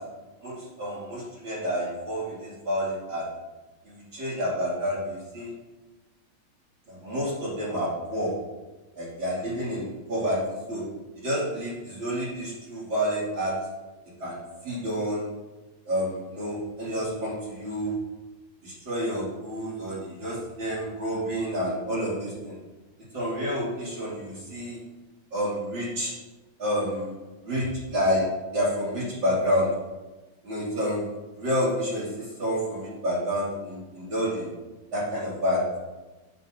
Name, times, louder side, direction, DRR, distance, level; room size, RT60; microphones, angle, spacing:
voice 1, 0.4-3.2 3.9-5.5 6.9-8.3 9.0-10.4 10.7-10.8 11.2-13.5 14.2-14.4 14.6-15.3 15.9-17.9 18.6-22.5 23.1-24.8 25.3-26.1 26.6-27.1 27.4-28.2 28.5-29.7 30.4-31.0 31.3-34.5 34.9-35.8, equal, 60° right, -9 dB, 3.5 m, -29 dB
9.2 x 7.5 x 2.8 m, 1.1 s
omnidirectional pair, 2.4 m